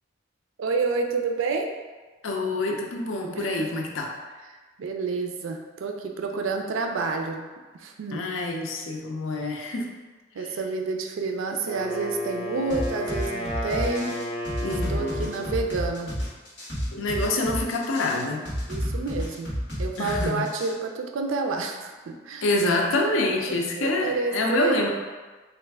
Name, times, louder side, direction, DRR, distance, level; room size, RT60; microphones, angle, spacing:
voice 1, 0.6-1.7 3.3-3.8 4.5-7.5 7.7-8.2 10.3-14.2 14.6-16.1 18.7-19.5 19.8-22.5 23.5-24.9, right 4 dB, 85° right, 3 dB, 0.4 m, -29 dB
voice 2, 2.2-4.1 8.1-9.9 14.6-15.3 16.9-18.5 20.0-20.4 22.4-24.9, left 2 dB, 90° left, 1 dB, 0.5 m, -26 dB
Wind instrument woodwind instrument, 11.6-15.8, left 1 dB, 35° left, 0.4 m, -33 dB
sound 1, 12.7-20.7, equal, 60° left, 1.1 m, -30 dB
3.2 x 2.4 x 3.4 m, 1.3 s
head